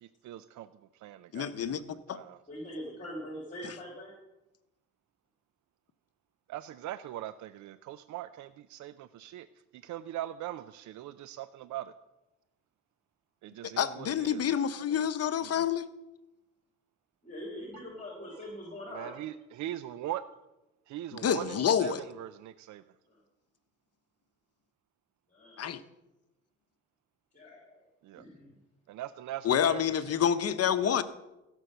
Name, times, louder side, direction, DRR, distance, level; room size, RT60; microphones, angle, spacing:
voice 1, 0.0-0.7 0.9-2.4 6.5-9.5 9.7-11.9 13.4-15.1 15.4-15.7 17.7-17.8 18.9-20.2 20.9-22.8 28.0-28.2 28.9-30.1, right 13 dB, 75° right, 13 dB, 0.5 m, -41 dB
voice 2, 1.3-1.8 2.1-2.2 13.8-15.9 21.2-22.0 25.6-25.8 29.4-31.0, left 8 dB, 55° left, 12 dB, 0.9 m, -28 dB
voice 3, 2.5-4.1 17.2-19.1 23.1-23.2 25.3-25.6 27.3-27.8 28.2-28.5, equal, 25° left, -1 dB, 3.4 m, -42 dB
15.5 x 6.3 x 6.7 m, 0.98 s
cardioid pair, 90°, 30 cm